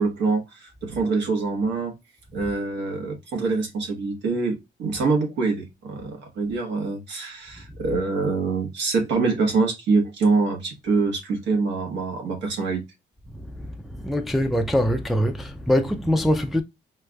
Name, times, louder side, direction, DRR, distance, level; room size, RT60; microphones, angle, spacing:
voice 1, 0.0-1.9 2.3-12.8, right 4 dB, 85° right, 1.3 m, -25 dB
voice 2, 13.3-16.6, equal, ahead, 0.4 m, -23 dB
4.4 x 2.5 x 2.3 m
cardioid pair, 125°, 18 cm